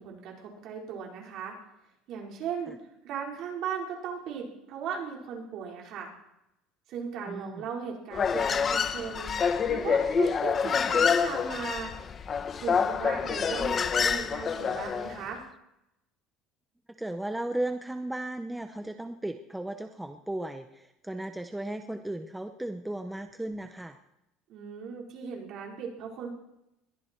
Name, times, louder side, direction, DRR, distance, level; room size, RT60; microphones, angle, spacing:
voice 1, 0.0-1.5 2.1-2.8 3.0-6.1 6.9-9.4 9.7-11.9 12.6-15.4 24.5-26.3, right 7 dB, 50° right, 0 dB, 4.5 m, -37 dB
voice 2, 7.3-7.7 17.0-24.0, right 1 dB, 5° right, 7 dB, 0.7 m, -35 dB
Human voice, 8.1-15.2, left 6 dB, 25° left, 0.8 m, -27 dB
21.5 x 14.0 x 4.5 m, 0.86 s
cardioid pair, 160°, 0 cm